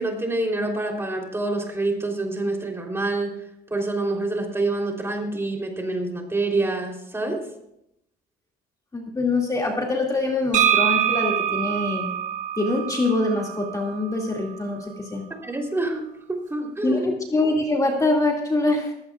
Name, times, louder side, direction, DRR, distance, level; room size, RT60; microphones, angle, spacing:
voice 1, 0.0-3.3 3.7-7.4 15.4-17.0, right 2 dB, 15° right, 1 dB, 3.4 m, -27 dB
voice 2, 8.9-12.1 12.6-15.2 16.8-18.9, left 2 dB, 20° left, 0 dB, 2.3 m, -24 dB
sound 1, 10.5-14.3, right 10 dB, 50° right, 2.3 m, -24 dB
19.5 x 15.5 x 2.4 m, 0.78 s
cardioid pair, 110°, 17 cm